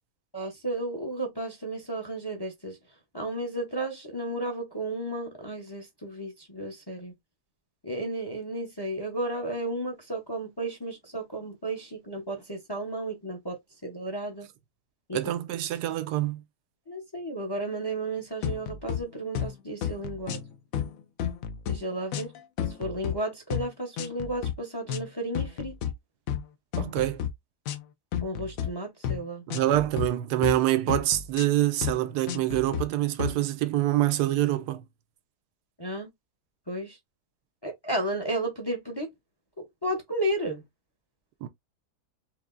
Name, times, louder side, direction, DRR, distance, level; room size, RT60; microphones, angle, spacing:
voice 1, 0.3-2.8 3.1-7.1 7.8-14.5 15.1-15.2 16.9-20.4 21.7-22.3 22.8-25.8 28.2-29.4 35.8-36.1 36.7-37.0 37.6-39.1 39.8-40.6, right 1 dB, 20° left, 0.7 m, -33 dB
voice 2, 15.1-16.4 26.8-27.2 29.5-34.8 41.4-41.5, right 14 dB, 85° right, 1.2 m, -26 dB
sound 1, 18.4-19.0 19.3-19.6 19.8-20.5 20.7-21.8 22.1-23.2 23.5-23.7 24.0-24.5 24.9-25.1 25.3-25.9 26.3-26.5 26.7-27.3 27.7-27.8 28.1-28.7 29.0-29.2 29.5-30.1 30.4-30.6 30.9-31.4 31.8-32.0 32.3-32.8 33.2-33.4, left 9 dB, 65° left, 1.0 m, -31 dB
4.7 x 2.8 x 2.5 m
omnidirectional pair, 1.7 m